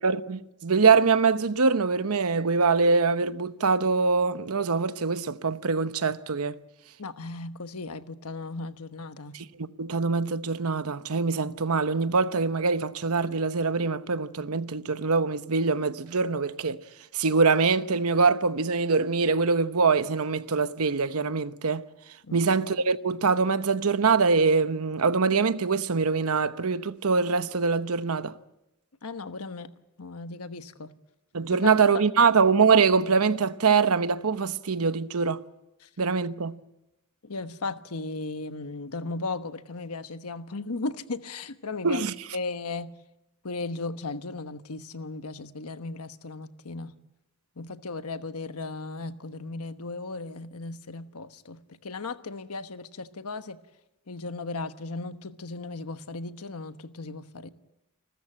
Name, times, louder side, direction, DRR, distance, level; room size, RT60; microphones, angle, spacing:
voice 1, 0.0-6.6 9.3-16.8 17.1-21.9 22.3-28.3 31.3-35.4 36.0-36.6 41.8-42.1, right 4 dB, 75° right, 0.9 m, -24 dB
voice 2, 7.0-9.3 22.2-22.4 29.0-29.7 30.0-30.9 31.6-31.7 32.2-32.4 35.8-35.9 37.2-42.0 42.3-42.9 43.4-46.9 47.6-53.6 54.1-57.5, left 3 dB, 85° left, 1.2 m, -36 dB
29.0 x 13.5 x 8.9 m
head